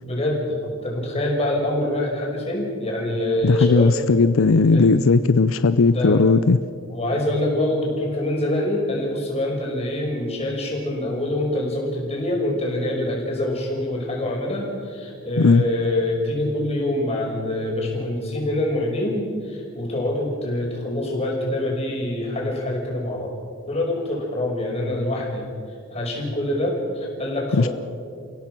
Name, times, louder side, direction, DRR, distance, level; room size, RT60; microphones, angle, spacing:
voice 1, 0.0-3.9 4.7-4.9 5.8-6.2 6.9-23.3 23.7-25.5 25.9-27.7, left 1 dB, 30° left, 5.6 m, -25 dB
voice 2, 3.4-6.6 15.4-15.6 27.5-27.7, left 4 dB, 80° left, 0.6 m, -17 dB
29.5 x 16.5 x 6.1 m
head